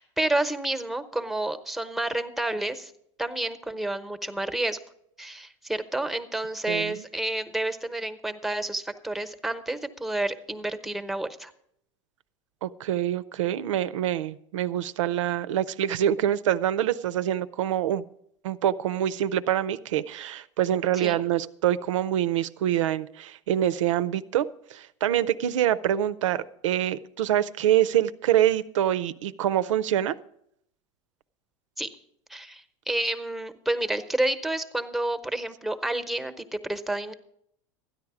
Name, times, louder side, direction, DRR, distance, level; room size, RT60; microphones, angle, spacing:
voice 1, 0.0-2.9 3.2-4.8 5.2-11.5 20.9-21.2 31.8-31.9 32.3-37.1, right 1 dB, ahead, 9 dB, 0.9 m, -30 dB
voice 2, 6.7-7.0 12.6-18.0 18.4-30.2, right 11 dB, 85° right, 16 dB, 0.5 m, -25 dB
13.5 x 9.7 x 4.8 m, 0.73 s
hypercardioid pair, 105°, 16 cm